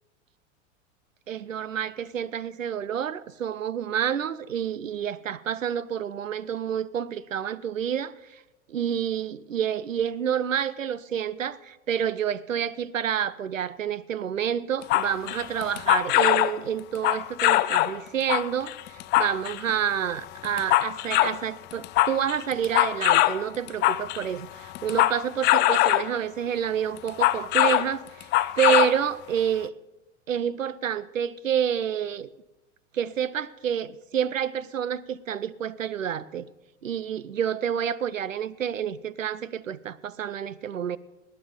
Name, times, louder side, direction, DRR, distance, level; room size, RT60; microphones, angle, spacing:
voice 1, 1.3-8.4 8.7-28.3 28.5-29.7 30.3-32.3 32.9-36.5 36.8-41.0, right 9 dB, 90° right, 0.6 m, -28 dB
sound 1, 14.8-16.6 17.0-18.0 18.3-19.7 20.2-21.4 21.7-24.3 24.7-26.2 27.0-27.9 28.2-29.0 29.4-29.5, left 16 dB, 30° left, 0.4 m, -22 dB
18.5 x 9.0 x 5.2 m
figure-of-eight pair, 90°, 38 cm